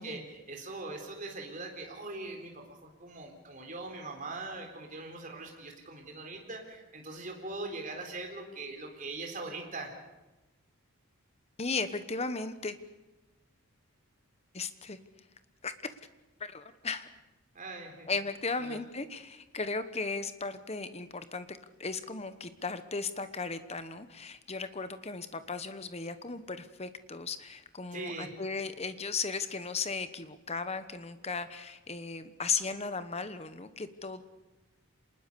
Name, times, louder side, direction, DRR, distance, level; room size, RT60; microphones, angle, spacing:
voice 1, 0.0-9.9 17.5-18.1 18.6-18.8 27.9-28.3, right 2 dB, 35° right, 2 dB, 3.9 m, -41 dB
voice 2, 11.6-12.8 14.5-15.0 15.6-15.9 16.4-17.1 18.1-34.2, left 4 dB, 30° left, 11 dB, 1.1 m, -36 dB
26.5 x 20.0 x 6.9 m, 1.1 s
head